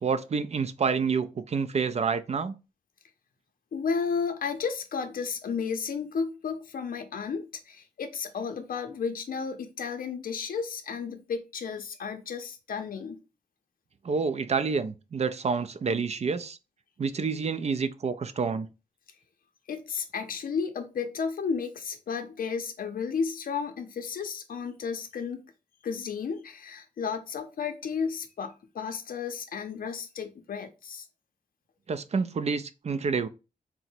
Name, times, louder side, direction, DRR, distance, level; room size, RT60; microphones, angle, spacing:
voice 1, 0.0-2.5 14.0-16.6 17.0-18.7 31.9-33.3, right 5 dB, 50° right, 0.4 m, -28 dB
voice 2, 3.7-13.2 19.7-25.4 25.8-31.1, left 6 dB, 85° left, 0.5 m, -33 dB
3.8 x 2.1 x 4.3 m
wide cardioid pair, 100°, 14 cm